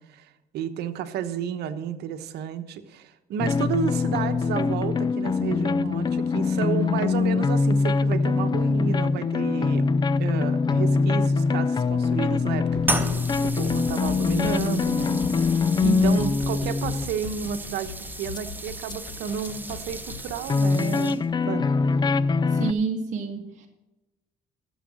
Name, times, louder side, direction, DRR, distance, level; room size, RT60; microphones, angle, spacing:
voice 1, 0.0-9.9 10.2-15.2 15.8-21.7, right 8 dB, 75° right, 10 dB, 1.1 m, -32 dB
sound 1, 3.4-17.1 18.3-18.4 18.9-19.0 19.4-19.5 20.5-22.7, left 4 dB, 25° left, 0.4 m, -23 dB
sound 2, 12.5-20.5, left 7 dB, 75° left, 1.3 m, -39 dB
sound 3, 12.8-21.4, right 2 dB, 10° right, 1.0 m, -35 dB
voice 2, 15.8-16.3 22.5-23.7, right 5 dB, 45° right, 0 dB, 1.6 m, -28 dB
13.5 x 7.3 x 6.3 m, 1.0 s
cardioid pair, 110°, 17 cm